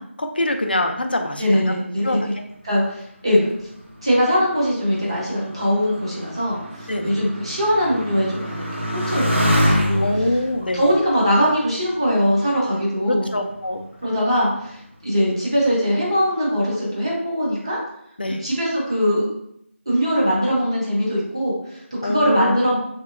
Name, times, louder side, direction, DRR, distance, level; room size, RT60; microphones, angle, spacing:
voice 1, 0.0-1.7 2.0-2.3 6.9-7.2 10.0-10.8 13.1-13.8 18.2-18.4 22.0-22.6, left 1 dB, 45° left, 5 dB, 0.3 m, -24 dB
voice 2, 1.4-2.3 2.6-3.5 4.0-10.1 10.7-13.3 14.0-14.8 15.0-17.8 18.4-19.3 19.9-22.8, equal, 25° right, -6 dB, 0.7 m, -21 dB
Motorcycle, 3.6-12.6 13.3-13.9, equal, 65° right, 0.8 m, -26 dB
2.9 x 2.8 x 2.4 m, 0.74 s
figure-of-eight pair, 180°, 7 cm